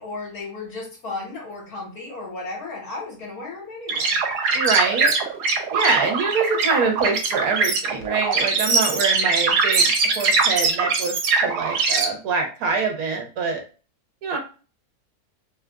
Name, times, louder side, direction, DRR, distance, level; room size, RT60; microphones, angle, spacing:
voice 1, 0.0-4.2, left 3 dB, 65° left, -3 dB, 2.0 m, -34 dB
sound 1, 3.9-12.1, right 4 dB, 85° right, 1.3 m, -22 dB
voice 2, 4.5-5.1 5.7-11.1 11.4-13.6 14.2-14.4, right 4 dB, 70° right, 3 dB, 1.3 m, -24 dB
3.7 x 2.4 x 2.2 m, 0.35 s
omnidirectional pair, 1.7 m